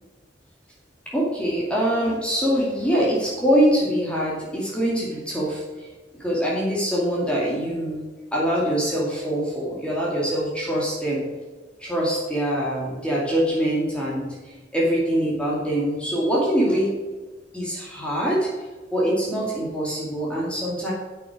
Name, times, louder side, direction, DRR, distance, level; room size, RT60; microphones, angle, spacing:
voice 1, 1.1-5.9 6.2-8.0 8.3-11.3 11.8-14.3 14.7-16.9 17.5-18.5 18.9-20.9, equal, 5° left, -5 dB, 2.4 m, -23 dB
8.6 x 6.3 x 6.1 m, 1.3 s
head